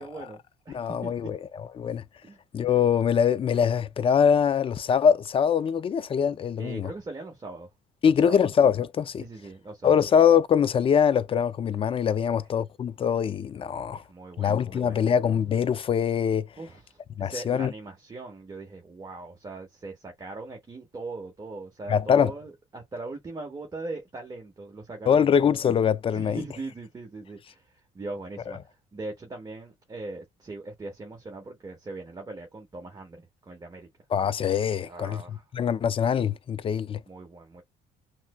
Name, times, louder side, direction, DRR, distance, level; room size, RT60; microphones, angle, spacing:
voice 1, 0.0-0.8 1.0-1.3 2.2-2.4 6.6-7.7 8.0-8.4 9.2-10.0 12.2-12.4 13.9-15.1 16.6-25.4 26.1-27.7 27.9-28.6 28.9-33.9 34.8-35.4 37.1-37.6, right 3 dB, 25° right, 1.0 m, -40 dB
voice 2, 0.7-1.4 1.8-2.0 2.5-6.9 8.0-9.2 9.8-14.0 14.4-16.5 17.2-17.7 21.9-22.3 25.1-26.4 34.1-37.0, left 7 dB, 35° left, 0.4 m, -23 dB
5.8 x 2.1 x 2.2 m
cardioid pair, 110°, 17 cm